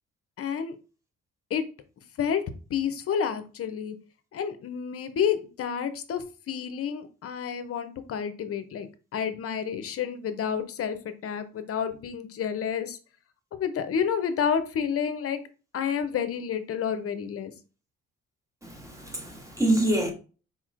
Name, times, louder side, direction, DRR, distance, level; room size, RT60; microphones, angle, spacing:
voice 1, 0.4-0.8 1.5-1.6 2.2-4.0 4.3-8.9 9.1-13.0 13.5-15.4 15.7-17.5, left 7 dB, 50° left, 0.6 m, -30 dB
voice 2, 18.6-20.1, right 1 dB, 10° right, 1.1 m, -26 dB
4.2 x 2.9 x 2.4 m
cardioid pair, 90°, 30 cm